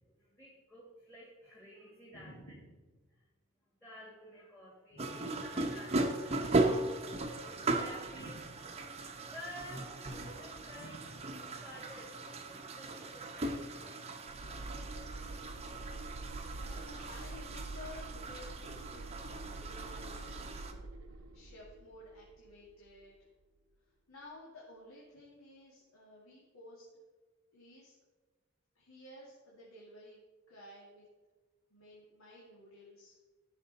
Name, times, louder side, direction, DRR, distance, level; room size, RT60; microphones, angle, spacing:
voice 1, 0.2-2.3 3.1-3.3 3.8-8.3 9.0-11.0 11.6-14.0, left 1 dB, 10° left, -5 dB, 1.8 m, -52 dB
voice 2, 2.1-2.7 4.9-5.6 8.1-8.5 10.7-11.4 14.3-15.0 16.6-23.3 23.8-26.8 27.5-28.0 28.7-31.1 31.7-33.2, left 1 dB, 75° left, -5 dB, 2.1 m, -54 dB
sound 1, 5.0-20.7, right 2 dB, 30° right, 0.8 m, -37 dB
sound 2, 14.3-23.2, right 2 dB, 65° right, 0.6 m, -46 dB
14.0 x 6.2 x 4.1 m, 1.3 s
head